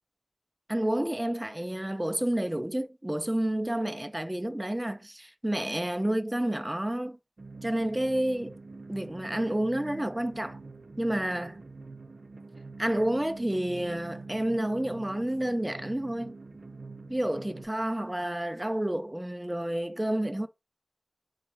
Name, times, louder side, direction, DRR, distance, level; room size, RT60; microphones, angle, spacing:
voice 1, 0.7-7.2 7.6-8.6 8.9-10.6 11.0-11.6 12.8-16.3 17.1-20.5, right 1 dB, 20° right, 0.5 m, -30 dB
sound 1, 7.4-17.7, right 3 dB, 85° right, 0.3 m, -45 dB
4.2 x 2.4 x 4.4 m
wide cardioid pair, 45°, 0 cm